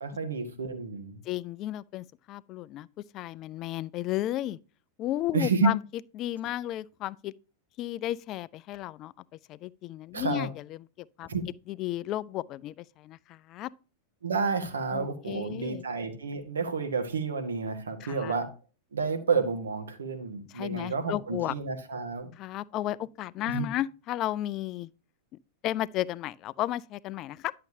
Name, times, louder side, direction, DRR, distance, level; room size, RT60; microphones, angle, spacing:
voice 1, 0.0-1.2 5.3-5.7 10.1-10.5 11.3-11.4 14.2-18.5 18.9-22.3 23.5-23.7, right 4 dB, 70° right, 1.3 m, -30 dB
voice 2, 1.2-2.9 3.1-4.6 5.0-5.8 6.1-7.3 7.8-11.3 11.7-13.7 14.9-15.8 18.0-18.3 20.5-21.5 22.4-24.9 25.6-27.5, left 14 dB, 35° left, 0.3 m, -33 dB
10.5 x 6.6 x 2.7 m
figure-of-eight pair, 90°, 0 cm